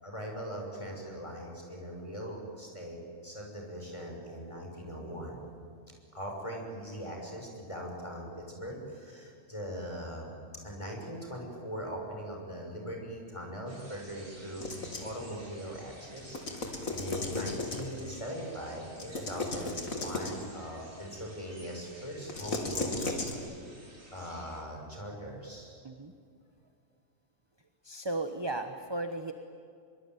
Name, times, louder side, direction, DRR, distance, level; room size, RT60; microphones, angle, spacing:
voice 1, 0.0-5.4 6.1-10.3 10.6-14.7 15.0-16.4 16.9-23.0 24.1-25.8, equal, 20° left, 0 dB, 6.2 m, -40 dB
sound 1, 13.7-24.6, right 1 dB, 70° right, 5.4 m, -53 dB
sound 2, 14.6-15.2 16.2-18.1 19.0-20.5 22.2-23.3, left 2 dB, 75° left, 3.4 m, -35 dB
voice 2, 27.8-29.3, right 2 dB, 20° right, 7 dB, 1.2 m, -35 dB
24.5 x 24.0 x 9.5 m, 2.4 s
omnidirectional pair, 1.4 m